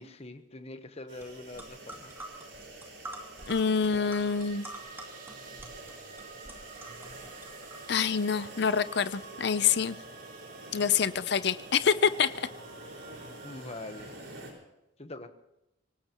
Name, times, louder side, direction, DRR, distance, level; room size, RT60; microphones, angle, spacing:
voice 1, 0.0-2.1 13.4-14.1 15.0-15.3, left 2 dB, 35° left, 8 dB, 1.1 m, -43 dB
sound 1, 1.1-14.5, right 2 dB, 80° right, 5.2 m, -47 dB
sound 2, 1.2-1.3 1.5-8.1, right 1 dB, 10° right, 2.7 m, -46 dB
sound 3, 3.4-14.2, right 5 dB, 45° right, 2.3 m, -52 dB
voice 2, 3.5-4.7 7.9-10.0 10.7-12.5, left 6 dB, 60° left, 14 dB, 0.6 m, -26 dB
25.0 x 18.5 x 3.1 m, 0.92 s
head